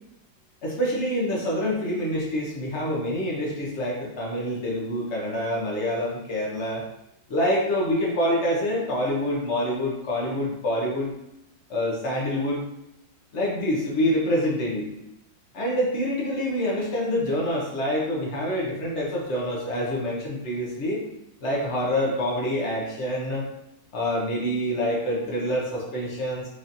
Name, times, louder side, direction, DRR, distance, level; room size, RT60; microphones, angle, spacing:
voice 1, 0.6-6.8 7.3-11.1 11.7-12.6 13.3-14.9 15.5-21.0 21.4-23.4 23.9-26.5, equal, 60° left, -3 dB, 0.7 m, -26 dB
4.8 x 2.7 x 2.5 m, 0.87 s
omnidirectional pair, 2.2 m